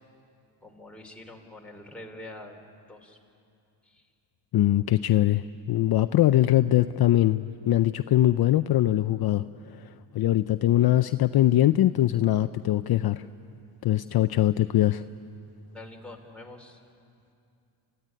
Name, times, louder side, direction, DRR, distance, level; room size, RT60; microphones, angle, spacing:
voice 1, 0.6-2.6 2.9-3.2 3.8-4.1 15.7-16.8, left 1 dB, ahead, 0 dB, 3.3 m, -45 dB
voice 2, 4.5-13.3 13.8-15.0, left 13 dB, 55° left, 10 dB, 0.6 m, -22 dB
28.0 x 15.5 x 9.7 m, 2.6 s
cardioid pair, 95°, 46 cm